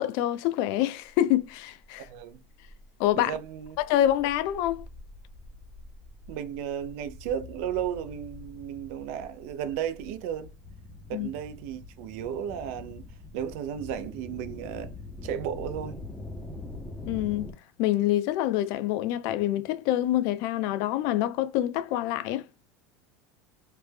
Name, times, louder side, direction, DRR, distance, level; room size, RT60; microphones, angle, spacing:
voice 1, 0.0-2.1 3.0-3.3 3.8-4.9 11.1-11.3 17.1-17.5 17.8-22.5, left 13 dB, 60° left, 0.4 m, -26 dB
sound 1, 1.7-17.5, left 2 dB, 5° left, 0.5 m, -44 dB
voice 2, 2.1-2.4 3.2-3.8 6.3-10.5 11.1-13.1 13.3-14.9 15.2-16.0, right 9 dB, 70° right, 0.4 m, -34 dB
3.3 x 2.0 x 3.2 m
supercardioid pair, 135°, 8 cm